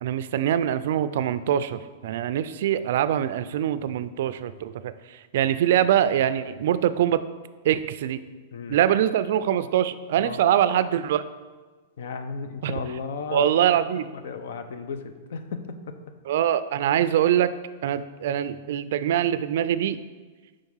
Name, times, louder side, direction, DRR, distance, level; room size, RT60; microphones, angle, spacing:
voice 1, 0.0-4.9 5.3-7.2 7.6-8.2 8.7-11.2 12.6-12.7 13.3-14.1 16.3-17.5 17.8-20.0, right 10 dB, 65° right, 14 dB, 0.3 m, -23 dB
voice 2, 12.0-13.5 13.7-15.8, left 5 dB, 75° left, 8 dB, 0.6 m, -35 dB
5.1 x 4.6 x 5.6 m, 1.3 s
hypercardioid pair, 140°, 0 cm